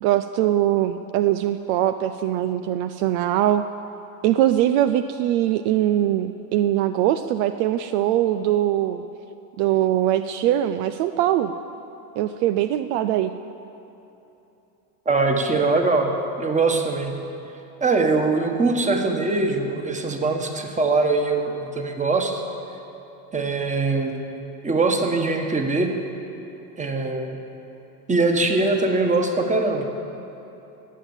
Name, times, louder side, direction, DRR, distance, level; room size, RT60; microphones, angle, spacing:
voice 1, 0.0-3.6 4.2-9.0 9.6-11.5 12.2-13.3, right 12 dB, 65° right, 10 dB, 0.6 m, -22 dB
voice 2, 15.0-17.3 17.8-22.4 23.3-24.2 24.6-25.9 26.8-27.4 28.1-29.9, right 3 dB, 15° right, 4 dB, 1.4 m, -22 dB
19.0 x 7.5 x 7.3 m, 3.0 s
supercardioid pair, 115°, 47 cm